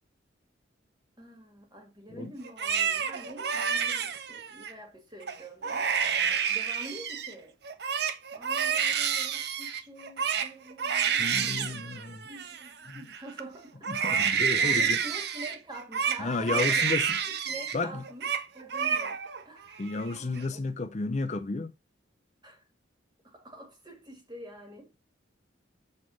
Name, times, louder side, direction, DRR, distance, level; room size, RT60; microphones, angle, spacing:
voice 1, 1.2-5.9 6.5-7.6 8.3-11.8 12.2-16.9 17.2-19.8 20.1-20.6 22.4-22.6 23.2-24.9, right 1 dB, 20° right, 1.8 m, -46 dB
Crying sobbing, 2.4-4.7 5.2-5.4 5.6-7.3 7.6-13.4 13.8-17.8 18.0-18.4 18.7-19.4 19.8-20.4, right 7 dB, 55° right, 0.7 m, -29 dB
voice 2, 11.2-12.3 12.9-13.0 13.9-15.0 16.2-17.1 17.7-18.0 19.8-21.7, left 3 dB, 35° left, 0.5 m, -32 dB
6.4 x 3.9 x 6.1 m
head